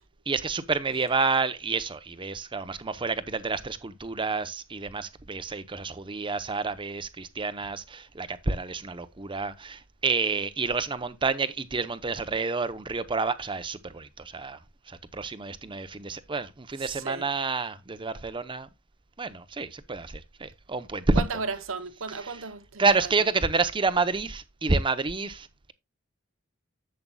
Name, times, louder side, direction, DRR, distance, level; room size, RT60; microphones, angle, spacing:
voice 1, 0.3-14.6 14.9-18.7 19.2-21.2 22.8-25.7, right 4 dB, 25° right, 0.7 m, -29 dB
voice 2, 16.8-17.3 21.1-23.1, right 5 dB, 70° right, 0.9 m, -35 dB
11.0 x 7.6 x 2.2 m
head